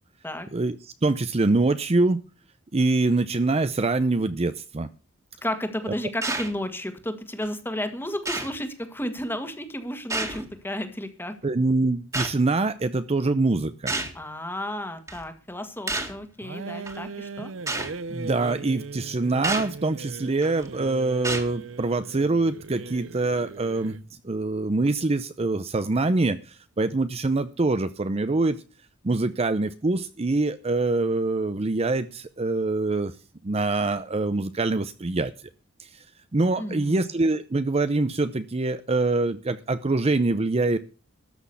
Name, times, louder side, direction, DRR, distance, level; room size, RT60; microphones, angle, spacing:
voice 1, 1.0-2.2 2.7-4.9 11.4-14.0 18.1-24.0 24.2-26.4 26.8-28.6 29.0-33.1 33.4-35.3 36.3-40.8, right 2 dB, 30° right, 11 dB, 0.6 m, -24 dB
voice 2, 5.4-11.3 14.1-17.5 36.6-37.1, left 1 dB, 10° left, 8 dB, 1.7 m, -32 dB
sound 1, 6.2-6.6 7.4-7.5 8.2-8.6 10.1-10.5 12.1-12.4 13.9-14.2 15.1-15.2 15.9-16.2 16.9-17.0 17.7-17.9 19.4-19.7 20.4-20.7 21.2-21.5, right 2 dB, 15° right, 2.0 m, -29 dB
sound 2, 16.4-24.1, right 4 dB, 75° right, 0.7 m, -39 dB
13.0 x 6.3 x 8.3 m, 0.35 s
head